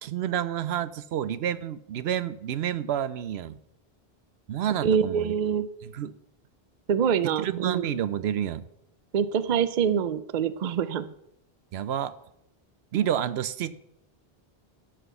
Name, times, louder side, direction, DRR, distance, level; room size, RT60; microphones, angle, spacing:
voice 1, 0.0-3.6 4.5-5.3 5.8-6.1 7.4-8.6 11.7-12.1 12.9-13.8, right 10 dB, 85° right, 15 dB, 0.9 m, -29 dB
voice 2, 4.8-5.7 6.9-7.8 9.1-11.1, right 7 dB, 50° right, 14 dB, 0.6 m, -25 dB
12.5 x 6.1 x 6.9 m, 0.81 s
omnidirectional pair, 1.0 m